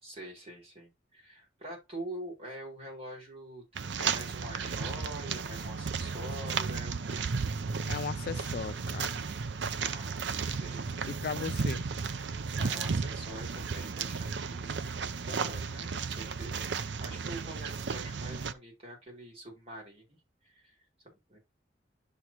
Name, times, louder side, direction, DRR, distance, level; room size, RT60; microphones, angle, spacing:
voice 1, 0.0-7.2 9.8-10.9 12.5-14.9 15.2-20.8 21.0-21.4, right 1 dB, 35° right, 5.1 m, -45 dB
sound 1, 3.7-18.5, right 5 dB, 80° right, 0.6 m, -34 dB
voice 2, 7.9-9.4 11.1-11.9, left 6 dB, 55° left, 0.3 m, -37 dB
11.5 x 4.3 x 3.0 m
head